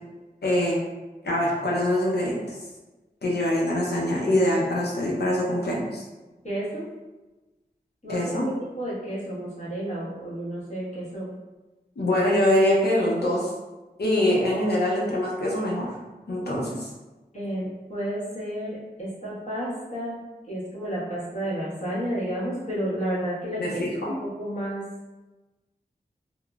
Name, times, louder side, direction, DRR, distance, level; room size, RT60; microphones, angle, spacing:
voice 1, 0.4-0.8 1.2-2.6 3.2-6.1 8.1-8.5 12.0-13.5 14.0-15.9 16.3-16.9 23.6-24.2, left 1 dB, 75° left, -3 dB, 0.6 m, -24 dB
voice 2, 6.4-6.9 8.0-8.4 8.8-11.3 17.3-20.2 20.5-24.8, equal, 45° left, -11 dB, 1.2 m, -31 dB
2.9 x 2.0 x 2.3 m, 1.1 s
wide cardioid pair, 45°, 17 cm